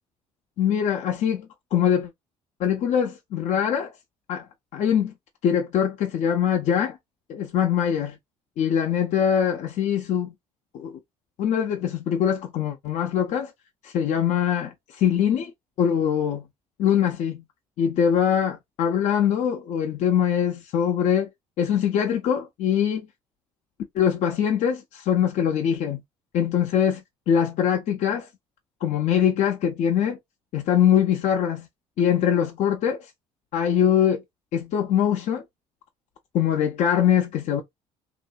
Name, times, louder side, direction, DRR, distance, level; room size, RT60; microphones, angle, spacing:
voice 1, 0.6-2.1 2.6-3.9 4.3-4.5 4.7-5.1 5.4-7.0 7.3-8.2 8.6-10.3 10.7-11.0 11.4-13.5 13.8-15.5 15.8-16.5 16.8-17.4 17.8-21.3 21.6-23.1 23.9-26.0 26.3-27.0 27.3-28.3 28.8-30.2 30.5-31.7 32.0-33.1 33.5-34.2 34.5-35.4 36.3-37.6, left 8 dB, 65° left, 0.5 m, -23 dB
2.7 x 2.5 x 2.3 m
supercardioid pair, 75°, 13 cm